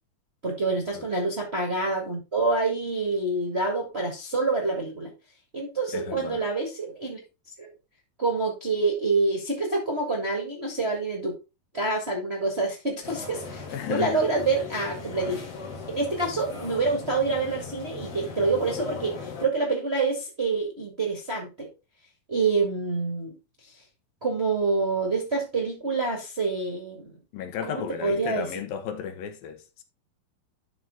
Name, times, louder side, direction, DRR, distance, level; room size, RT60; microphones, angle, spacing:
voice 1, 0.4-5.1 5.5-7.2 7.6-7.7 8.2-11.3 11.7-15.4 15.9-21.7 22.3-23.3 24.2-27.2 27.6-28.5, right 3 dB, 30° right, 1.2 m, -27 dB
voice 2, 5.9-6.4 13.7-14.3 27.3-29.8, left 8 dB, 75° left, 2.7 m, -34 dB
sound 1, 13.0-19.5, left 4 dB, 45° left, 3.0 m, -38 dB
12.0 x 4.9 x 3.8 m
omnidirectional pair, 4.3 m